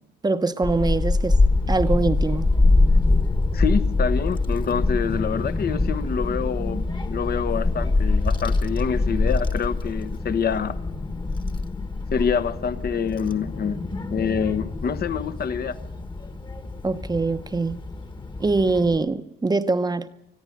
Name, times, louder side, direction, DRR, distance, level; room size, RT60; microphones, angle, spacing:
voice 1, 0.2-1.4 1.7-2.5 16.8-17.8 18.4-20.1, right 3 dB, 20° right, 0.9 m, -23 dB
Child speech kid speaking / Wind, 0.6-19.0, left 2 dB, 25° left, 1.4 m, -24 dB
voice 2, 3.5-10.8 12.1-13.8 14.1-15.8, left 7 dB, 50° left, 1.1 m, -26 dB
21.0 x 14.0 x 9.2 m
cardioid pair, 90°, 20 cm